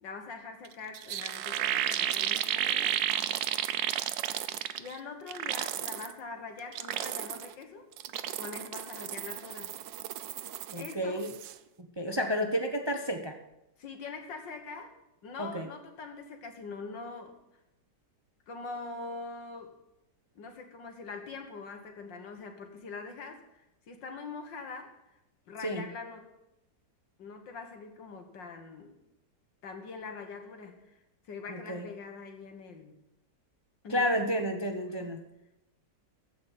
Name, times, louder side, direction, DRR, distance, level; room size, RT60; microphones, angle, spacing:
voice 1, 0.0-3.0 4.8-7.9 8.3-9.7 10.7-11.2 12.2-12.4 13.8-17.4 18.5-19.7 20.4-25.0 25.5-26.3 27.2-29.0 29.6-31.0 31.2-32.9 33.8-34.2 34.9-35.1, left 4 dB, 75° left, 5 dB, 2.2 m, -43 dB
sound 1, 0.6-0.7 0.9-5.0 5.3-6.1 6.6-7.5 7.9-10.9 11.2-11.5, right 11 dB, 90° right, 1.4 m, -33 dB
voice 2, 10.7-11.3 11.8-13.4 15.4-15.7 25.6-25.9 31.5-31.9 33.9-35.2, equal, 25° right, 5 dB, 0.6 m, -31 dB
14.5 x 5.2 x 9.0 m, 0.90 s
omnidirectional pair, 2.0 m